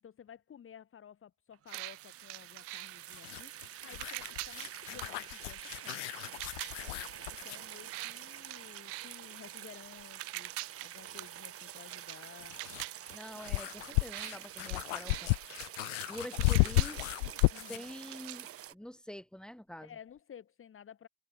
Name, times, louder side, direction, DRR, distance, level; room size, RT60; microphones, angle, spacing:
voice 1, 0.0-6.1 7.4-10.5 10.8-12.6 17.5-17.8 19.8-21.1, left 8 dB, 35° left, 3.0 m, -54 dB
sound 1, 1.5-18.7, right 10 dB, 35° right, 1.6 m, -48 dB
sound 2, 1.7-18.7, right 39 dB, 70° right, 5.6 m, -46 dB
sound 3, 3.1-7.7 10.0-10.1 12.1-17.9, left 27 dB, 70° left, 0.5 m, -33 dB
voice 2, 13.1-15.4 16.1-17.1 17.6-19.9, equal, ahead, 7.1 m, -46 dB
hypercardioid pair, 85°, 38 cm